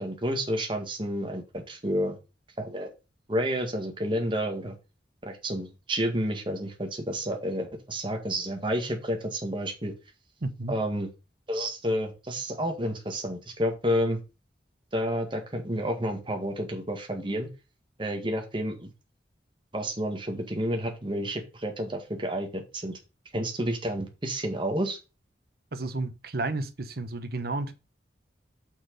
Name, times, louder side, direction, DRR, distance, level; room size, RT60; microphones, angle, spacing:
voice 1, 0.0-2.2 2.6-2.9 3.3-4.7 5.2-9.9 10.7-11.1 11.5-14.2 14.9-17.5 18.0-18.9 19.7-23.0 23.3-25.0, equal, 30° right, 1.7 m, -30 dB
voice 2, 10.4-10.7 25.7-27.7, right 2 dB, 60° right, 1.0 m, -32 dB
6.1 x 6.0 x 5.2 m
head